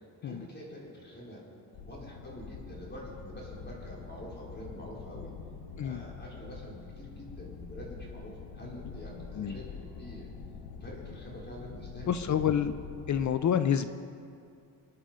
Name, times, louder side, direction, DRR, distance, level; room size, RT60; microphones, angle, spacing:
voice 1, 0.2-1.4 1.8-5.3 5.7-10.3 10.8-12.7, equal, 25° left, -4 dB, 4.6 m, -46 dB
sound 1, 1.7-13.3, left 6 dB, 85° left, 1.2 m, -45 dB
voice 2, 12.1-12.7 13.1-13.9, left 9 dB, 45° left, 11 dB, 0.7 m, -28 dB
26.5 x 9.8 x 5.1 m, 2.4 s
cardioid pair, 125°, 39 cm